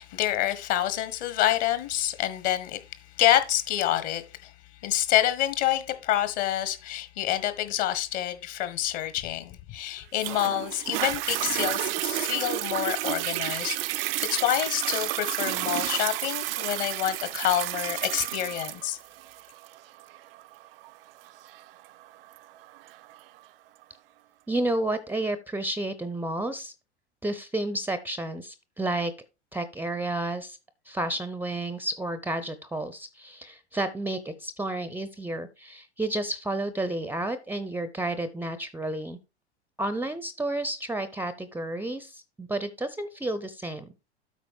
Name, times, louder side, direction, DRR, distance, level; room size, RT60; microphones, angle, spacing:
voice 1, 0.0-2.8 3.2-4.5 4.8-13.8 14.3-19.0, left 12 dB, 45° left, 1.4 m, -27 dB
Toilet flush, 10.2-23.2 23.8-23.9, right 17 dB, 55° right, 0.5 m, -31 dB
voice 2, 24.5-26.7 27.2-29.1 29.5-30.6 30.9-39.2 39.8-44.1, right 1 dB, 5° right, 0.6 m, -31 dB
8.3 x 4.8 x 4.8 m
figure-of-eight pair, 90°, 34 cm